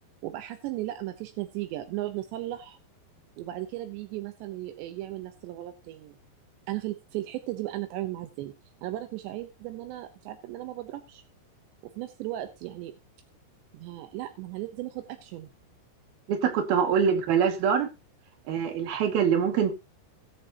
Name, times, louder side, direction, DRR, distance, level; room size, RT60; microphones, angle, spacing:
voice 1, 0.2-2.8 3.4-6.2 6.7-8.5 8.8-11.2 11.8-12.9 13.7-15.5 18.6-18.7, right 15 dB, 85° right, 3.2 m, -36 dB
voice 2, 16.3-17.9 18.5-19.7, right 7 dB, 65° right, 3.8 m, -24 dB
20.5 x 7.8 x 2.9 m
omnidirectional pair, 4.9 m